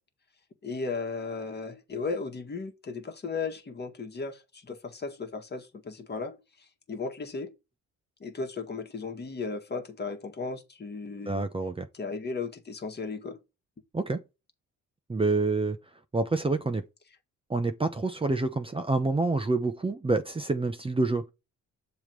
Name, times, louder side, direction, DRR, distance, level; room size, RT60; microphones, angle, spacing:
voice 1, 0.6-6.4 6.9-7.5 8.2-11.5 11.9-13.4, left 4 dB, 35° left, 1.7 m, -35 dB
voice 2, 11.3-11.9 13.9-14.2 15.1-15.8 16.1-16.8 17.5-21.2, right 3 dB, 20° right, 0.9 m, -27 dB
7.1 x 3.3 x 4.5 m
cardioid pair, 90°, 30 cm